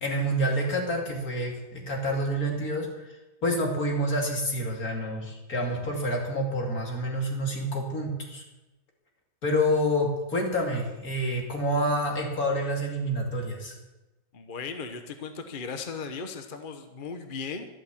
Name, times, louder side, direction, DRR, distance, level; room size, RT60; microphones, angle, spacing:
voice 1, 0.0-3.1 3.4-8.4 9.4-13.7, equal, 65° left, 1 dB, 3.1 m, -28 dB
voice 2, 14.3-17.7, left 5 dB, 35° left, 7 dB, 1.1 m, -37 dB
12.5 x 12.0 x 7.3 m, 1.1 s
omnidirectional pair, 1.7 m